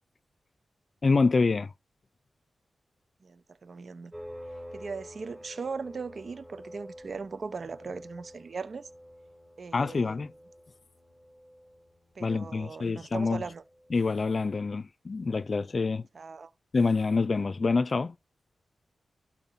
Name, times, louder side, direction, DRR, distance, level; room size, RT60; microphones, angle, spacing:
voice 1, 1.0-1.7 9.7-10.3 12.2-13.4 13.9-16.0 16.7-18.2, left 4 dB, 55° left, 0.5 m, -26 dB
voice 2, 3.2-4.1 4.7-8.9 9.6-10.2 12.1-13.6 16.1-16.5, right 4 dB, 60° right, 0.9 m, -39 dB
sound 1, 4.1-14.4, equal, 15° right, 4.2 m, -49 dB
12.5 x 4.3 x 5.7 m
cardioid pair, 45°, 0 cm